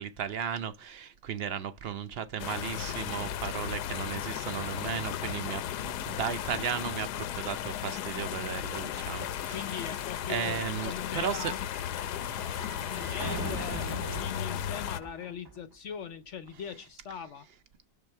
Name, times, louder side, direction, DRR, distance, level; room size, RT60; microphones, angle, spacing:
voice 1, 0.0-9.8 10.3-11.5, right 8 dB, 75° right, 0.5 m, -35 dB
sound 1, 2.4-15.0, left 10 dB, 75° left, 1.1 m, -35 dB
sound 2, 6.0-16.0 16.2-16.3, right 2 dB, 25° right, 0.5 m, -44 dB
voice 2, 9.5-11.6 12.5-17.5, left 7 dB, 60° left, 0.8 m, -40 dB
6.8 x 3.9 x 4.4 m
omnidirectional pair, 1.8 m